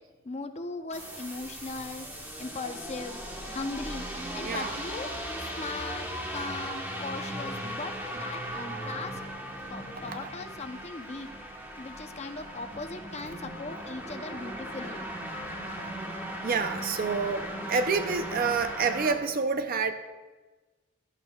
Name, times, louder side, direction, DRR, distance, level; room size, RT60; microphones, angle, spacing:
voice 1, 0.2-2.1 2.4-3.2 3.5-4.1 4.3-5.1 5.4-9.2 9.7-11.3 11.8-15.1, left 3 dB, 30° left, 6 dB, 0.7 m, -39 dB
sound 1, 0.9-19.1, equal, 10° right, 1.1 m, -38 dB
voice 2, 15.3-16.0 16.4-19.9, right 4 dB, 45° right, 9 dB, 0.5 m, -29 dB
16.5 x 11.5 x 2.3 m, 1.3 s
head